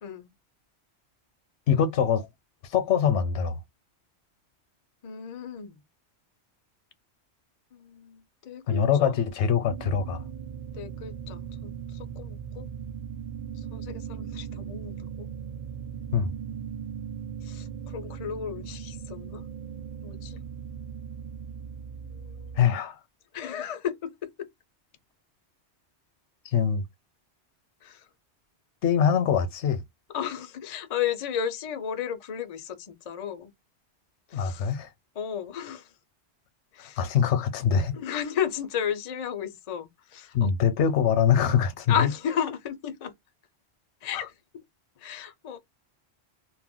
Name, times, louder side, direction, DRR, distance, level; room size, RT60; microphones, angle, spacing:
voice 1, 0.0-0.3 5.0-5.8 7.7-9.2 10.7-12.7 13.6-15.3 17.4-19.5 20.0-20.4 22.0-22.6 23.3-24.5 27.8-28.1 30.1-33.5 34.3-34.7 35.2-35.9 36.7-37.0 37.9-40.5 41.9-43.1 44.0-44.6 45.0-45.6, left 9 dB, 55° left, 0.4 m, -34 dB
voice 2, 1.7-2.3 2.6-3.6 8.7-10.2 16.1-16.3 22.6-23.0 26.4-26.8 28.8-29.8 34.3-34.9 37.0-37.9 40.3-42.1 44.1-44.3, left 7 dB, 80° left, 0.9 m, -23 dB
sound 1, 9.6-22.6, right 7 dB, 55° right, 0.4 m, -38 dB
2.3 x 2.1 x 3.5 m
omnidirectional pair, 1.2 m